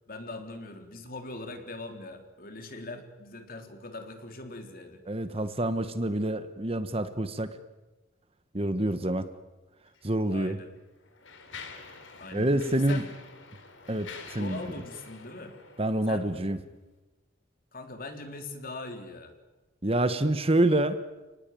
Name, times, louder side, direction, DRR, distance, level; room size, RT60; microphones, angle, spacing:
voice 1, 0.1-5.0 10.3-10.7 12.2-13.1 14.4-15.6 16.1-16.3 17.7-19.3, left 2 dB, 45° left, 5 dB, 3.6 m, -41 dB
voice 2, 5.1-7.6 8.5-9.3 10.0-10.6 12.3-13.0 13.9-14.6 15.8-16.6 19.8-21.0, right 1 dB, 30° right, 11 dB, 1.3 m, -27 dB
Mechanisms, 9.9-10.0 10.7-16.5, left 5 dB, 75° left, 3.6 m, -47 dB
29.5 x 19.0 x 9.3 m, 1.1 s
head